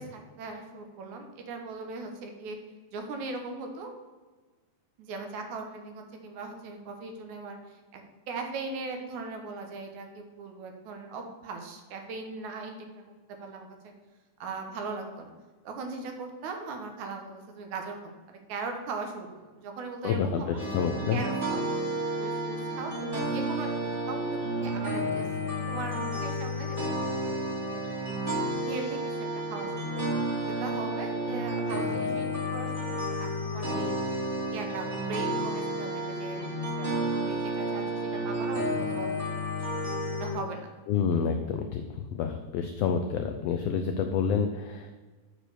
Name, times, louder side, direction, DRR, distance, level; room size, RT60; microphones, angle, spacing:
voice 1, 0.0-2.6 2.9-3.9 5.0-13.7 14.4-15.3 15.6-20.6 21.1-21.6 22.2-23.7 24.1-25.3 25.7-26.8 27.5-28.2 28.7-30.1 30.5-34.1 34.5-39.2 40.2-40.7, right 3 dB, 75° right, 4 dB, 2.4 m, -39 dB
voice 2, 20.0-21.2 40.9-44.9, left 6 dB, 85° left, 6 dB, 1.4 m, -28 dB
sound 1, 20.6-40.3, equal, 20° right, 2.0 m, -31 dB
7.7 x 4.5 x 6.7 m, 1.3 s
omnidirectional pair, 3.4 m